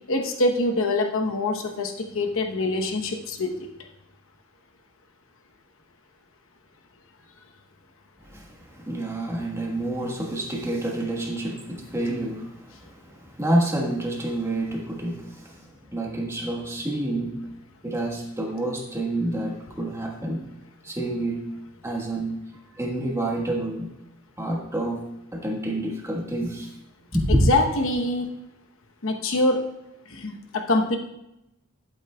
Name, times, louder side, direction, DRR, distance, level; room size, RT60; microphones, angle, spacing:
voice 1, 0.1-3.7 27.3-28.3 29.0-29.6 30.1-31.0, left 2 dB, 65° left, 4 dB, 1.0 m, -24 dB
voice 2, 8.8-12.6 13.0-15.5 15.9-17.3 17.8-20.4 20.8-21.4 21.8-22.4 22.8-23.9 24.4-25.0 25.3-26.7 27.1-27.4, right 1 dB, 15° right, -1 dB, 1.3 m, -28 dB
11.5 x 8.6 x 2.3 m, 0.87 s
head